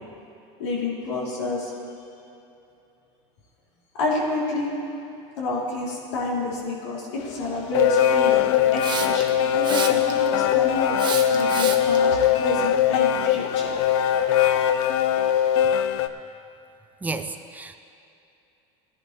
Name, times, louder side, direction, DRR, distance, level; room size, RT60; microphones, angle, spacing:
voice 1, 0.6-1.7 3.9-4.8 5.4-8.4 8.7-11.0 11.3-13.8, left 2 dB, 90° left, -5 dB, 3.3 m, -29 dB
sound 1, 7.2-16.1, left 9 dB, 70° left, 0.5 m, -21 dB
Hiss, 8.8-9.3 9.6-10.3 11.0-12.0, right 7 dB, 30° right, 1.1 m, -30 dB
voice 2, 17.0-17.8, right 3 dB, 10° right, 8 dB, 0.6 m, -32 dB
18.0 x 10.5 x 3.2 m, 2.8 s
supercardioid pair, 120°, 15 cm